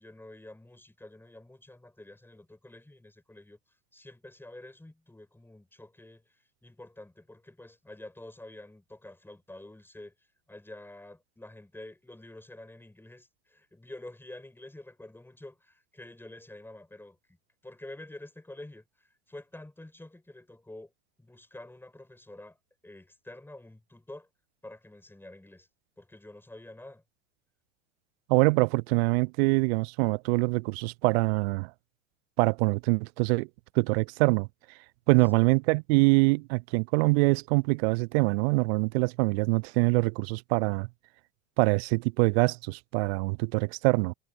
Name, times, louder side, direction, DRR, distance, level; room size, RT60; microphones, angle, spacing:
voice 1, 0.0-3.6 3.9-6.2 6.6-10.1 10.5-17.4 17.6-20.9 21.2-22.6 22.8-24.3 24.6-25.7 26.0-27.0 35.2-35.5, left 1 dB, 5° left, 5.3 m, -48 dB
voice 2, 28.3-31.7 32.4-33.5 33.8-34.5 35.1-40.9 41.6-44.1, right 28 dB, 55° right, 0.5 m, -24 dB
hypercardioid pair, 85°, 38 cm